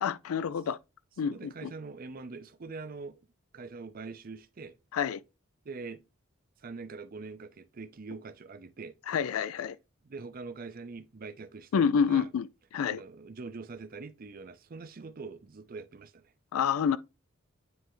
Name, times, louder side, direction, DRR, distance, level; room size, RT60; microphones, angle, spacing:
voice 1, 0.0-0.8 1.2-1.7 4.9-5.2 9.1-9.8 11.7-12.5 12.7-13.0 16.5-17.0, left 7 dB, 90° left, 0.4 m, -28 dB
voice 2, 1.2-3.2 3.5-4.7 5.6-6.0 6.6-8.9 10.1-12.3 12.9-16.3, right 4 dB, 45° right, 0.5 m, -43 dB
9.4 x 3.3 x 3.0 m
head